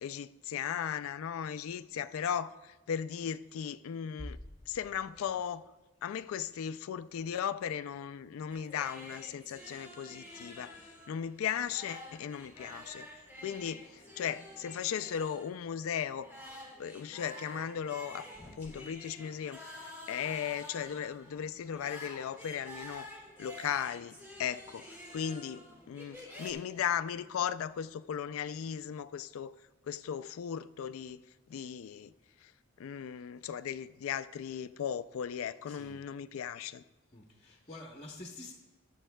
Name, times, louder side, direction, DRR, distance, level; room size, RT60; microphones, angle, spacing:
voice 1, 0.0-4.4 4.7-5.6 6.0-10.8 11.1-13.1 13.4-16.3 16.8-18.3 18.6-23.1 23.4-29.5 29.9-31.2 31.5-32.1 32.4-32.5 32.8-36.8, left 8 dB, 75° left, 0.3 m, -37 dB
sound 1, 8.5-26.5, left 1 dB, 10° right, 1.9 m, -49 dB
voice 2, 35.7-36.0 37.1-38.5, left 1 dB, 25° left, 0.9 m, -46 dB
21.5 x 7.2 x 2.2 m
head